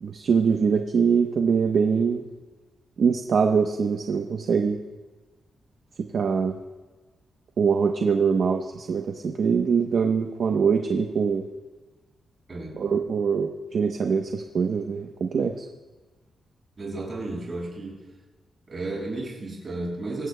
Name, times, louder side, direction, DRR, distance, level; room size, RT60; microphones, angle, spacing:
voice 1, 0.0-2.2 3.0-4.8 6.1-6.5 7.6-11.4 12.8-15.6, right 6 dB, 50° right, 4 dB, 0.8 m, -23 dB
voice 2, 12.5-13.0 16.8-18.1 18.7-20.3, right 2 dB, 30° right, -3 dB, 5.9 m, -33 dB
25.0 x 16.0 x 2.2 m, 1.2 s
wide cardioid pair, 170°, 0 cm